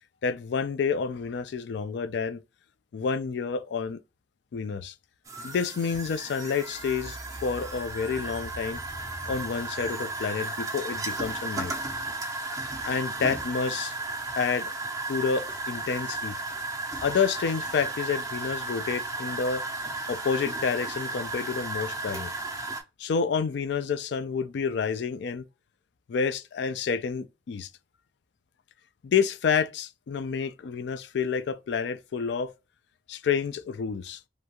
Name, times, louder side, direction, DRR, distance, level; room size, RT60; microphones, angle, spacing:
voice 1, 0.2-2.4 2.9-4.0 4.5-4.9 5.4-8.8 9.3-11.7 12.8-13.9 14.4-14.7 15.1-16.4 17.0-19.6 20.1-22.3 23.0-25.4 26.1-27.7 29.0-32.5 33.1-34.2, left 6 dB, 60° left, 0.3 m, -29 dB
sound 1, 5.3-22.8, right 2 dB, 20° right, 0.4 m, -34 dB
2.6 x 2.3 x 2.8 m
head